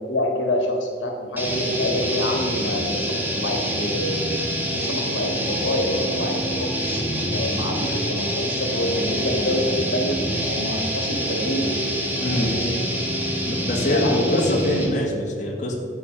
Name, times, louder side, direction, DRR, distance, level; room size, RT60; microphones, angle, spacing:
voice 1, 0.1-4.3 4.7-10.2 10.5-11.7 12.1-12.7 13.9-14.7, left 1 dB, 90° left, 2 dB, 1.6 m, -26 dB
sound 1, 1.4-15.1, equal, 10° right, 1.4 m, -26 dB
voice 2, 12.2-12.5 13.5-15.7, left 1 dB, 40° left, -2 dB, 1.7 m, -24 dB
11.0 x 7.3 x 5.2 m, 2.5 s
head